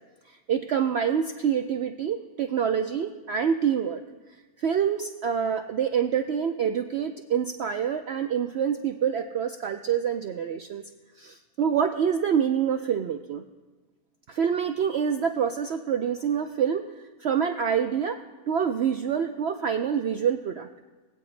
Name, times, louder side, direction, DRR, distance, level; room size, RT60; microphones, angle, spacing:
voice 1, 0.3-4.0 4.6-10.8 11.2-13.4 14.3-18.2 18.5-20.7, right 7 dB, 75° right, 6 dB, 0.6 m, -26 dB
21.5 x 8.4 x 3.2 m, 1.3 s
omnidirectional pair, 1.6 m